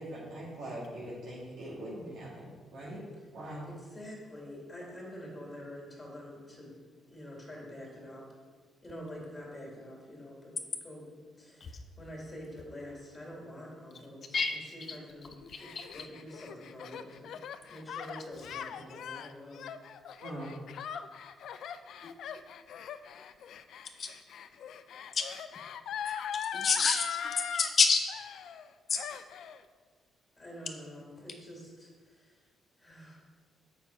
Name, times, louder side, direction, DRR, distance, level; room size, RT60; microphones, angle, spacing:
voice 1, 0.0-2.3 2.7-3.0 3.3-3.7 20.2-20.5, right 1 dB, 80° right, -8 dB, 2.1 m, -41 dB
voice 2, 3.6-6.7 7.1-8.2 8.8-10.6 10.8-11.1 11.4-17.4 17.7-19.7 30.4-32.4 32.8-33.2, equal, 25° left, -2 dB, 2.3 m, -46 dB
Gasp, 15.3-27.7 28.1-28.7 28.9-29.6, left 8 dB, 70° left, 0.3 m, -41 dB
voice 3, 15.5-15.8 22.0-22.1 24.0-24.1 25.1-25.3 26.5-27.2 27.5-28.0 28.9-29.0, left 5 dB, 50° left, 4 dB, 0.9 m, -27 dB
7.1 x 5.7 x 4.5 m, 1.5 s
cardioid pair, 90°, 0 cm